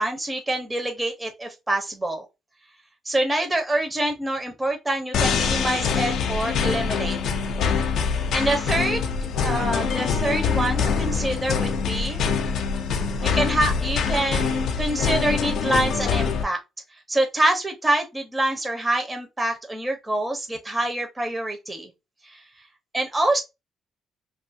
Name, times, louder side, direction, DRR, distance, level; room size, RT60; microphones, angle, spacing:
voice 1, 0.0-2.2 3.0-7.2 8.1-9.0 9.4-12.2 13.2-16.6 17.1-21.9 22.2-22.4 22.9-23.4, right 1 dB, 15° right, 0.6 m, -26 dB
sound 1, 5.1-16.4, left 6 dB, 75° left, 0.4 m, -24 dB
2.6 x 2.3 x 2.6 m
cardioid pair, 90°, 0 cm